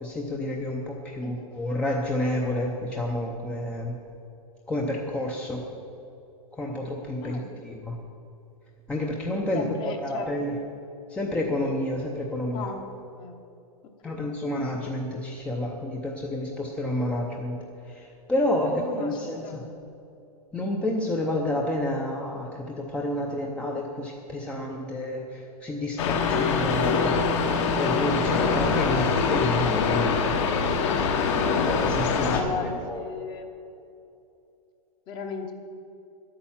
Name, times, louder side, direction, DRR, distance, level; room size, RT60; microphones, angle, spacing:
voice 1, 0.0-4.0 4.7-5.6 6.5-8.0 8.9-10.6 11.1-12.7 14.0-19.6 20.5-27.2 27.8-30.5 31.8-33.0, left 1 dB, 5° left, -1 dB, 0.6 m, -29 dB
voice 2, 1.2-1.5 7.2-7.5 9.5-10.6 12.5-12.8 13.2-13.4 14.1-14.3 18.6-19.2 19.4-19.7 28.9-29.2 32.2-33.5 35.1-35.5, left 5 dB, 25° left, 6 dB, 1.0 m, -36 dB
sound 1, 26.0-32.4, left 5 dB, 50° left, 1.4 m, -24 dB
11.0 x 8.8 x 7.3 m, 2.7 s
hypercardioid pair, 160°, 20 cm